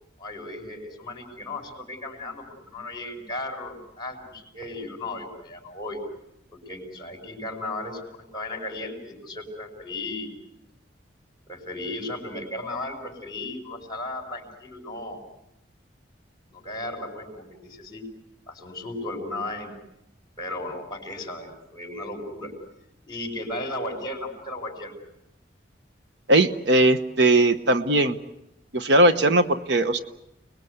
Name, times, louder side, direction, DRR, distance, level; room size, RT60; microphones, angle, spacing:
voice 1, 0.2-6.0 6.5-10.3 11.5-15.2 16.5-18.0 18.5-19.7 20.4-22.5 23.1-25.0, left 2 dB, 25° left, 4 dB, 5.4 m, -35 dB
voice 2, 26.3-28.2 28.7-30.0, right 1 dB, 65° right, 10 dB, 1.1 m, -19 dB
30.0 x 20.5 x 8.1 m, 0.86 s
head